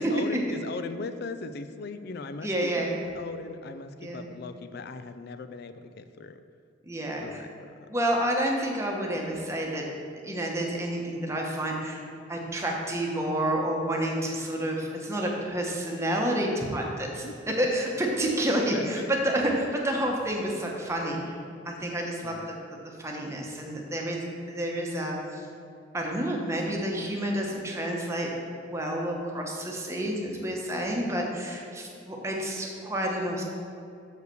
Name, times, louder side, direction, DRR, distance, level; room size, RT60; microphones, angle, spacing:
voice 1, 0.0-6.4 7.2-7.9 17.2-17.6 18.7-19.1 22.2-22.5, left 3 dB, 55° left, 10 dB, 0.4 m, -39 dB
voice 2, 2.4-3.0 4.0-4.3 6.8-7.4 7.9-9.9 10.2-12.0 12.3-17.2 17.6-21.4 21.6-22.5 23.0-25.5 25.9-28.3 28.7-33.4, right 1 dB, 15° right, -1 dB, 1.0 m, -29 dB
6.5 x 4.8 x 6.7 m, 2.5 s
head